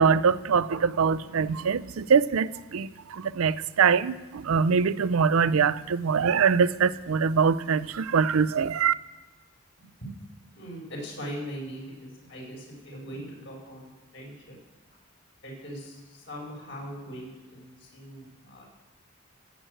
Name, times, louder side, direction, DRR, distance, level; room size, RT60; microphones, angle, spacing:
voice 1, 0.0-8.9, right 6 dB, 90° right, 0.5 m, -23 dB
voice 2, 9.8-10.1 10.5-14.6 15.4-18.6, equal, 60° left, 4.6 m, -40 dB
14.0 x 7.9 x 7.7 m
head